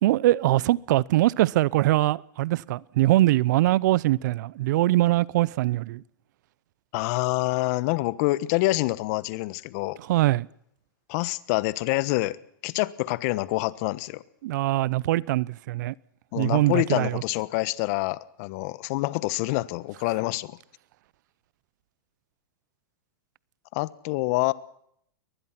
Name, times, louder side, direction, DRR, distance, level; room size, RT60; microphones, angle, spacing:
voice 1, 0.0-6.0 10.1-10.5 14.4-15.9 16.3-17.2, right 16 dB, 60° right, 0.7 m, -22 dB
voice 2, 6.9-10.0 11.1-12.4 12.6-14.2 16.3-20.6 23.7-24.5, left 20 dB, 50° left, 1.2 m, -26 dB
23.0 x 20.0 x 6.0 m
hypercardioid pair, 125°, 11 cm